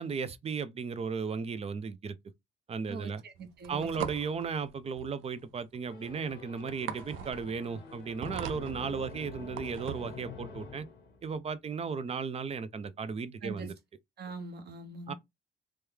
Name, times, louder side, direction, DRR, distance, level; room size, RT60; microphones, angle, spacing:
voice 1, 0.0-2.2 2.7-3.2 3.7-10.8 11.2-13.7 15.1-15.2, right 5 dB, 30° right, 0.4 m, -35 dB
voice 2, 2.9-4.1 13.4-13.7 14.2-15.1, right 3 dB, 55° right, 1.1 m, -42 dB
sound 1, 3.3-10.2, right 9 dB, 90° right, 0.4 m, -42 dB
sound 2, 5.8-11.4, left 3 dB, 65° left, 0.8 m, -46 dB
3.1 x 2.2 x 3.4 m
cardioid pair, 90°, 20 cm